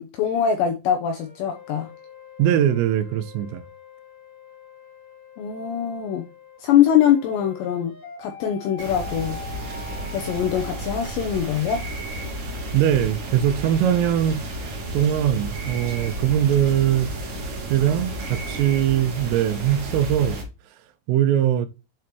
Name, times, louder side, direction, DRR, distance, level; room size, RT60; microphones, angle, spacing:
voice 1, 0.0-1.9 5.4-6.3 6.6-7.9 8.2-9.4 10.1-11.8, left 9 dB, 80° left, 2.5 m, -22 dB
sound 1, 1.0-11.6, left 5 dB, 40° left, 2.8 m, -43 dB
voice 2, 2.4-3.6 12.7-14.4 14.9-17.1 17.7-20.4 21.1-21.7, right 10 dB, 80° right, 3.2 m, -21 dB
sound 2, 8.8-20.4, right 1 dB, 45° right, 2.6 m, -32 dB
8.3 x 4.9 x 3.0 m
omnidirectional pair, 6.0 m